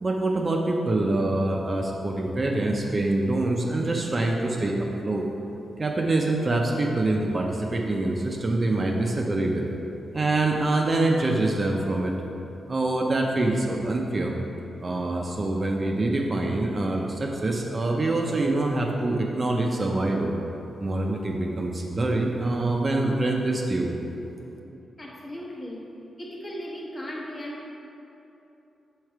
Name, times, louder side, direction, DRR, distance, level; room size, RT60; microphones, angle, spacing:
voice 1, 0.0-5.2 5.8-9.7 10.1-12.1 12.7-14.3 14.8-20.3 20.8-23.9, right 2 dB, 30° right, 0 dB, 0.5 m, -25 dB
voice 2, 25.0-25.9 26.2-27.7, equal, 25° left, -2 dB, 1.0 m, -37 dB
6.3 x 4.9 x 4.6 m, 3.0 s
wide cardioid pair, 120°, 0 cm